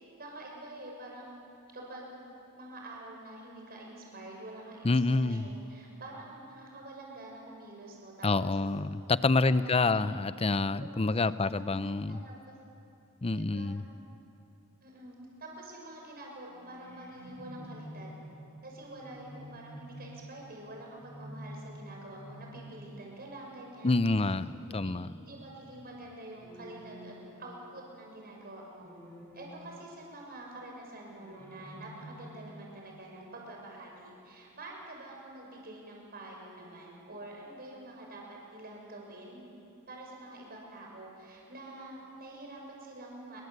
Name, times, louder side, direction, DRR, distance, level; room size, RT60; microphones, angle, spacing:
voice 1, 0.2-1.4 1.7-2.1 2.5-8.6 9.4-10.0 10.8-12.5 13.3-13.7 14.8-18.1 18.6-24.3 24.7-24.9 25.2-27.1 27.4-28.9 29.3-39.4 39.9-43.4, right 1 dB, 45° right, -1 dB, 6.5 m, -47 dB
voice 2, 4.8-5.5 8.2-12.2 13.2-13.8 23.8-25.1, left 3 dB, 30° left, 14 dB, 0.6 m, -27 dB
sound 1, 16.5-28.1 28.8-30.2 31.1-32.7, equal, 10° left, 3.4 m, -50 dB
28.0 x 23.0 x 8.2 m, 2.7 s
head